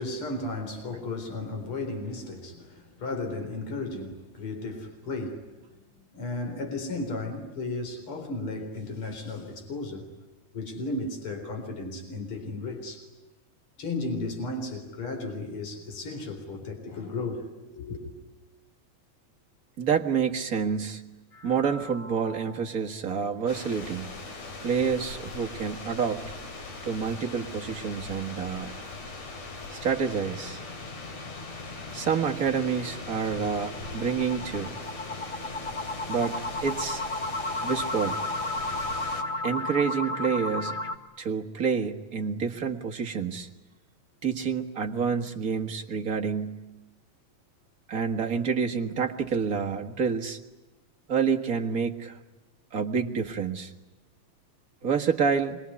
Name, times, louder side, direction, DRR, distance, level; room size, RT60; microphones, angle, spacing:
voice 1, 0.0-5.5 6.1-10.1 10.5-13.1 13.8-17.4 17.8-18.1, left 2 dB, 45° left, 4.7 m, -34 dB
voice 2, 19.8-21.0 21.4-24.1 24.6-26.2 26.8-28.7 29.7-30.6 31.9-34.7 36.1-37.0 37.6-38.2 39.4-40.8 41.2-43.5 44.2-46.6 47.9-50.4 51.1-52.2 52.7-53.7 54.8-55.6, right 6 dB, 40° right, 1.5 m, -28 dB
sound 1, 21.3-22.8 23.2-23.3 23.7-23.8 24.2-24.3 29.1-40.9, left 2 dB, 25° left, 1.1 m, -35 dB
sound 2, 23.5-39.2, left 3 dB, 65° left, 4.0 m, -40 dB
26.0 x 22.5 x 9.6 m
omnidirectional pair, 3.3 m